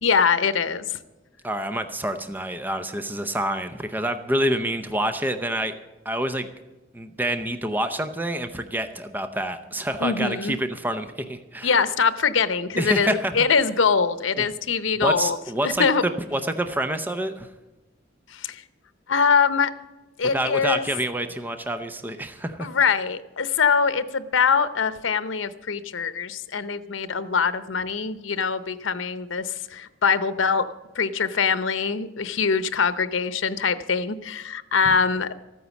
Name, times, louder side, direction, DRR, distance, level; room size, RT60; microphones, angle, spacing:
voice 1, 0.0-1.0 10.0-10.5 11.6-15.4 15.6-16.0 18.3-18.6 19.1-19.7 20.2-20.9 22.6-30.7 30.9-35.4, left 5 dB, 90° left, 13 dB, 0.8 m, -23 dB
voice 2, 1.4-5.7 6.0-6.5 6.9-11.8 12.8-13.3 14.4-14.5 15.0-15.8 16.3-17.5 20.3-22.7, right 1 dB, 10° right, 8 dB, 0.6 m, -27 dB
14.0 x 9.4 x 7.1 m, 1.1 s
head